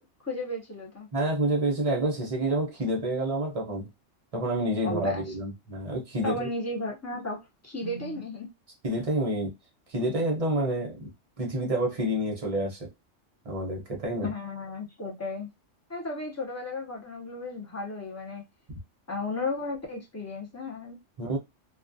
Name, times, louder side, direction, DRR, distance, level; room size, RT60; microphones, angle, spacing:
voice 1, 0.2-1.1 4.8-5.2 6.2-7.4 7.6-8.5 10.0-10.1 14.2-15.5 15.9-18.4 19.1-21.0, left 2 dB, 20° left, 0.4 m, -34 dB
voice 2, 1.1-3.9 4.3-6.5 7.8-8.2 8.8-9.5 9.9-11.1 11.4-12.9 13.4-14.3 21.2-21.4, right 1 dB, 35° right, 0.6 m, -28 dB
2.3 x 2.2 x 2.5 m
omnidirectional pair, 1.3 m